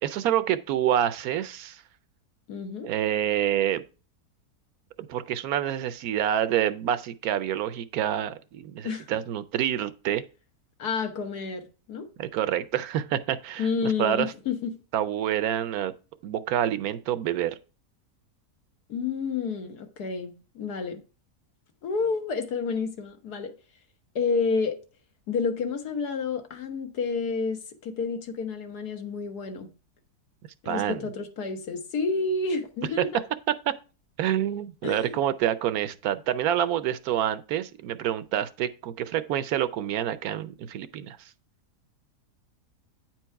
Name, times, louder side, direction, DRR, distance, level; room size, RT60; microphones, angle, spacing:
voice 1, 0.0-1.8 2.8-3.8 5.0-10.2 12.2-13.7 14.0-14.3 14.9-15.9 16.2-17.6 30.7-31.0 34.2-41.2, right 10 dB, 75° right, 1.0 m, -27 dB
voice 2, 2.5-2.9 8.8-9.2 10.8-12.1 13.6-14.7 18.9-21.0 21.8-23.5 24.1-24.8 25.3-29.7 30.6-33.2 34.8-35.2, left 4 dB, 75° left, 1.6 m, -30 dB
9.1 x 4.6 x 4.5 m
omnidirectional pair, 1.7 m